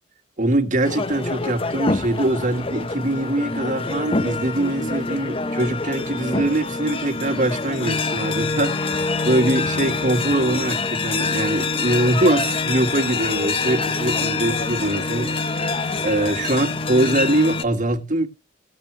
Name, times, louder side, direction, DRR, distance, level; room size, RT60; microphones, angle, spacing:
voice 1, 0.4-18.3, right 1 dB, 45° right, 1.7 m, -23 dB
sound 1, 0.8-17.6, left 3 dB, 30° left, 0.8 m, -25 dB
18.5 x 7.4 x 3.3 m
head